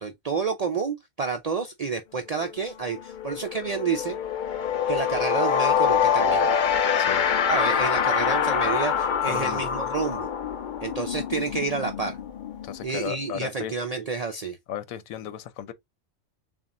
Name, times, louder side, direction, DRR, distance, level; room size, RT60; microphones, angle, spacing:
voice 1, 0.0-4.2 4.9-6.5 7.5-10.3 10.8-12.2 12.8-14.6, right 5 dB, 70° right, 0.3 m, -29 dB
sound 1, 2.4-2.6 2.9-13.4, left 7 dB, 55° left, 0.5 m, -25 dB
voice 2, 9.2-9.6 12.6-13.7 14.7-15.7, left 10 dB, 80° left, 1.1 m, -35 dB
7.0 x 2.4 x 2.5 m
omnidirectional pair, 1.4 m